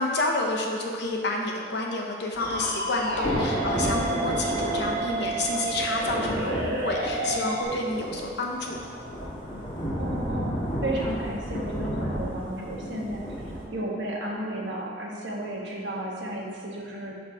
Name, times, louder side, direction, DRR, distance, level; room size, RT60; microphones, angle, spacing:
voice 1, 0.0-8.8 12.9-13.0, left 2 dB, 65° left, 1 dB, 0.8 m, -29 dB
Thunder / Rain, 2.3-13.6, equal, 30° left, 1.2 m, -32 dB
sound 1, 2.4-7.6, right 2 dB, 50° right, 0.9 m, -30 dB
voice 2, 9.9-17.1, right 1 dB, 75° right, -2 dB, 1.1 m, -33 dB
6.1 x 3.1 x 5.6 m, 2.3 s
head